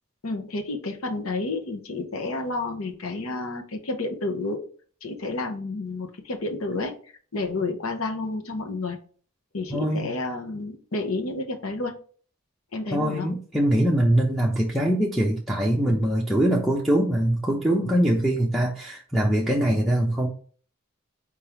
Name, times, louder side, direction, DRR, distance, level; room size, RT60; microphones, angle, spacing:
voice 1, 0.2-4.6 5.0-6.9 7.3-9.0 9.5-11.9 12.7-13.3, left 2 dB, 80° left, 4 dB, 0.9 m, -30 dB
voice 2, 9.7-10.1 12.9-20.3, right 1 dB, ahead, -4 dB, 0.7 m, -23 dB
4.6 x 3.6 x 3.0 m, 0.43 s
head